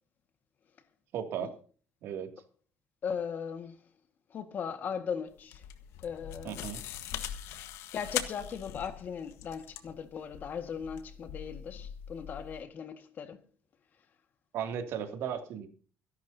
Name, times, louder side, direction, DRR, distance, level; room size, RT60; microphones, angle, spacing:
voice 1, 1.1-1.5 2.0-2.3 6.4-6.8 14.5-15.7, right 8 dB, 65° right, 2.5 m, -35 dB
voice 2, 3.0-3.8 4.3-5.6 6.0-6.7 7.9-13.4, left 7 dB, 40° left, 1.7 m, -38 dB
sound 1, 5.3-12.6, left 10 dB, 75° left, 1.4 m, -41 dB
24.5 x 11.5 x 2.8 m
cardioid pair, 145°, 5 cm